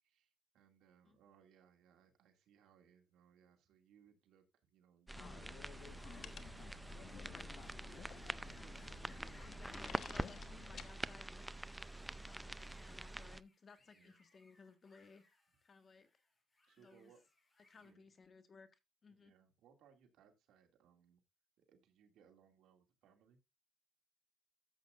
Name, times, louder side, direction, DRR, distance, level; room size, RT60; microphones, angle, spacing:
voice 1, 0.0-8.9 12.0-12.4 13.8-14.2 16.6-17.2 17.7-18.0 19.1-21.2 21.6-23.4, right 8 dB, 80° right, 2.3 m, -69 dB
sound 1, 5.1-10.9, left 6 dB, 60° left, 1.1 m, -53 dB
sound 2, 5.1-13.4, right 1 dB, 10° right, 0.5 m, -46 dB
sound 3, 5.7-17.9, left 2 dB, 25° left, 5.1 m, -72 dB
voice 2, 9.0-11.5 12.2-15.2 15.6-16.1 16.8-17.1 17.6-19.3, left 4 dB, 40° left, 1.5 m, -61 dB
13.0 x 8.1 x 2.5 m
cardioid pair, 90°, 0 cm